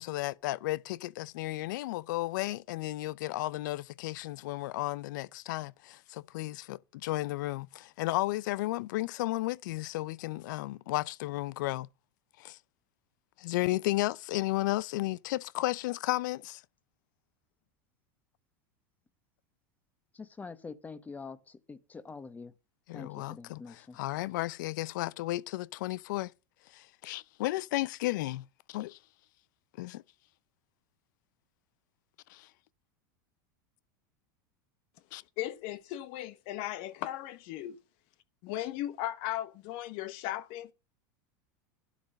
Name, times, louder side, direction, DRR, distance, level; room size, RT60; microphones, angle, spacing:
voice 1, 0.0-11.9 12.4-12.6 13.4-16.6 22.9-26.3 26.7-29.0 29.8-30.0 32.3-32.5 35.1-35.2, left 18 dB, 75° left, 0.6 m, -33 dB
voice 2, 20.1-22.5 22.9-24.0, left 4 dB, 15° left, 1.2 m, -45 dB
voice 3, 35.4-37.8 38.4-40.7, left 14 dB, 55° left, 1.0 m, -37 dB
12.0 x 10.5 x 5.2 m
supercardioid pair, 125°, 10 cm